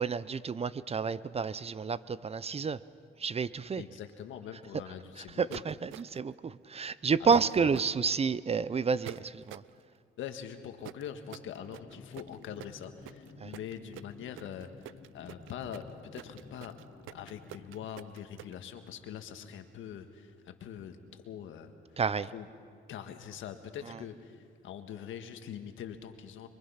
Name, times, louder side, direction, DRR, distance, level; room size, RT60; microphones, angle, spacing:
voice 1, 0.0-2.8 3.2-3.8 5.4-9.6 13.4-13.5 22.0-22.3 23.9-24.0, right 5 dB, 30° right, 17 dB, 0.6 m, -30 dB
voice 2, 3.8-5.6 7.2-7.7 10.2-16.7 17.1-22.0 22.3-22.5 22.9-26.5, left 9 dB, 80° left, 7 dB, 1.7 m, -43 dB
sound 1, 5.5-6.3 7.3-7.9 9.0-9.7 10.8-18.5, right 14 dB, 85° right, 0.5 m, -46 dB
sound 2, 11.7-17.9, left 4 dB, 35° left, 1.7 m, -53 dB
26.0 x 23.5 x 5.8 m, 2.2 s
cardioid pair, 90°, 20 cm